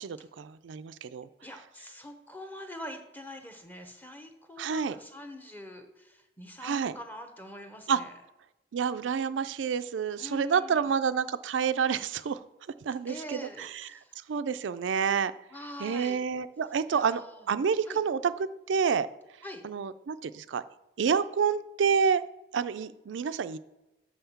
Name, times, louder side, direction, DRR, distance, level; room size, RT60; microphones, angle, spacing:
voice 1, 0.0-1.3 4.6-5.0 6.6-6.9 7.9-8.0 8.7-12.4 12.8-13.7 14.3-15.3 15.8-19.1 19.6-20.6 21.0-22.2 22.5-23.6, right 6 dB, 85° right, 12 dB, 0.4 m, -28 dB
voice 2, 1.4-8.2 10.2-10.9 13.1-14.2 15.5-16.2 16.9-17.5 17.8-18.0 19.4-19.6, equal, 10° left, 6 dB, 0.9 m, -44 dB
6.3 x 5.6 x 7.0 m, 1.0 s
head